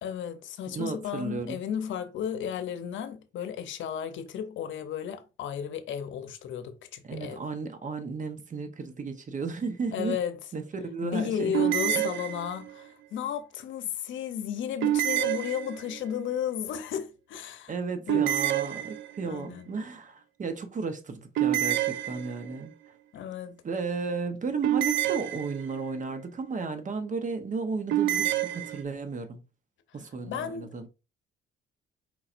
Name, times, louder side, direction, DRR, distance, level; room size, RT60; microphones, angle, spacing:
voice 1, 0.0-7.4 9.9-10.4 11.0-17.7 18.1-18.3 19.2-19.7 23.1-23.6 30.2-30.7, left 9 dB, 75° left, 0.7 m, -33 dB
voice 2, 0.7-1.6 7.0-10.2 10.5-11.5 11.9-12.0 17.7-22.7 23.6-29.4 29.9-30.9, right 4 dB, 40° right, 0.9 m, -34 dB
sound 1, 11.5-12.8 14.8-16.1 18.1-19.4 21.4-22.7 24.6-25.9 27.9-28.8, right 13 dB, 75° right, 0.5 m, -28 dB
4.7 x 4.1 x 2.5 m
cardioid pair, 90°, 20 cm